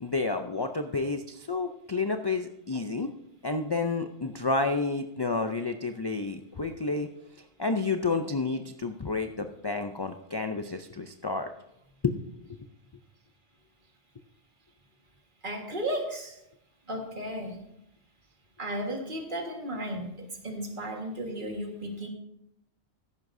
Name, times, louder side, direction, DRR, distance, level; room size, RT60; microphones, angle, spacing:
voice 1, 0.0-3.1 3.4-7.1 7.4-11.5 12.0-12.2, left 3 dB, 40° left, 6 dB, 0.4 m, -30 dB
voice 2, 15.4-16.4 16.9-17.6 18.6-22.1, right 1 dB, 50° right, 2 dB, 1.8 m, -34 dB
14.0 x 11.0 x 2.7 m, 0.81 s
omnidirectional pair, 1.1 m